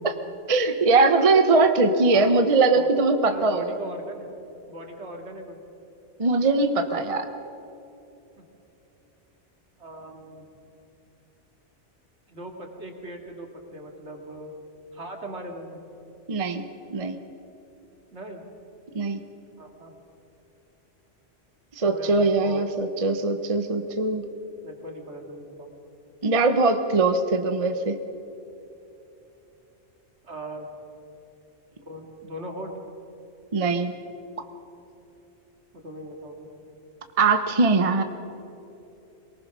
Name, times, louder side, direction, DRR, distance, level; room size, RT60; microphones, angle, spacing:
voice 1, 0.5-3.8 6.2-7.3 16.3-17.2 18.9-19.2 21.8-24.2 26.2-28.0 33.5-33.9 37.2-38.0, right 3 dB, 35° right, 7 dB, 0.9 m, -21 dB
voice 2, 3.3-4.3 4.7-5.6 8.4-8.5 9.8-10.5 12.3-14.5 14.9-15.8 18.1-18.4 19.6-19.9 21.9-22.6 24.6-25.7 30.2-30.7 31.9-32.7 35.8-36.5, right 1 dB, 70° right, 2 dB, 2.7 m, -39 dB
23.0 x 19.5 x 6.1 m, 3.0 s
omnidirectional pair, 1.2 m